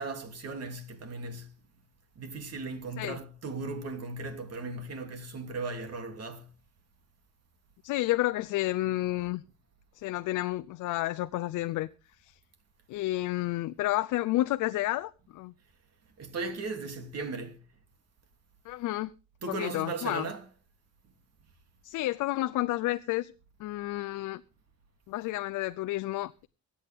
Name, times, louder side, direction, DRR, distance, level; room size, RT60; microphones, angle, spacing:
voice 1, 0.0-1.5 2.2-6.5 16.2-17.6 19.4-20.4, right 3 dB, 55° right, 3.0 m, -37 dB
voice 2, 7.8-9.4 10.0-11.9 12.2-12.3 12.9-15.5 18.7-19.1 19.5-20.3 21.8-23.3 23.6-24.4 25.1-26.5, left 17 dB, 90° left, 0.6 m, -30 dB
23.0 x 8.6 x 3.6 m
cardioid pair, 90°, 30 cm